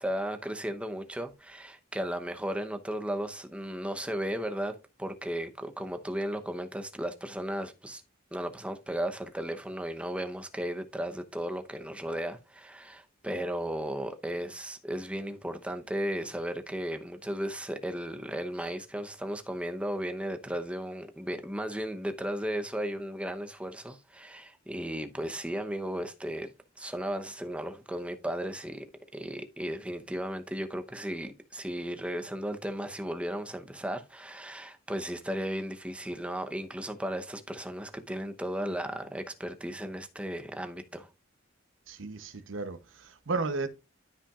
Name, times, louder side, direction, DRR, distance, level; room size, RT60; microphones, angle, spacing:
voice 1, 0.0-8.0 8.3-41.1, equal, 5° right, 0.8 m, -35 dB
voice 2, 41.9-43.7, right 3 dB, 85° right, 0.8 m, -34 dB
13.0 x 5.6 x 2.4 m
head